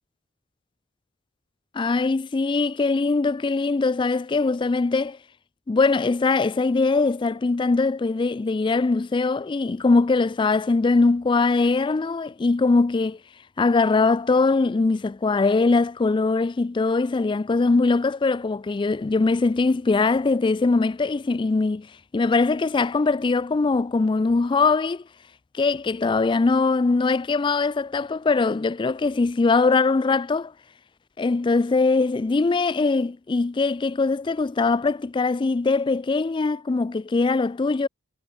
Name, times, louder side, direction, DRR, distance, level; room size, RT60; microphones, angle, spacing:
voice 1, 1.7-5.2 5.7-13.2 13.6-21.9 22.1-25.0 25.5-30.5 31.2-37.9, left 3 dB, 25° left, 0.3 m, -21 dB
head